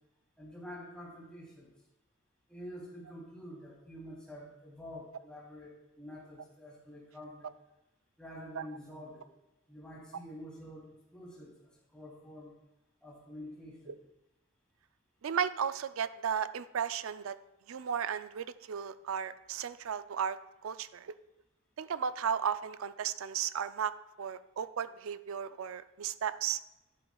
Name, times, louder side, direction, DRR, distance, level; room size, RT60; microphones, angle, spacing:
voice 1, 0.4-1.7 2.5-7.5 8.2-9.2 9.7-12.5 13.0-14.0, equal, 5° left, -6 dB, 3.0 m, -48 dB
voice 2, 15.2-17.4 17.7-21.1 21.8-23.9 24.2-26.6, right 7 dB, 75° right, 13 dB, 0.4 m, -35 dB
12.0 x 10.5 x 2.3 m, 0.95 s
head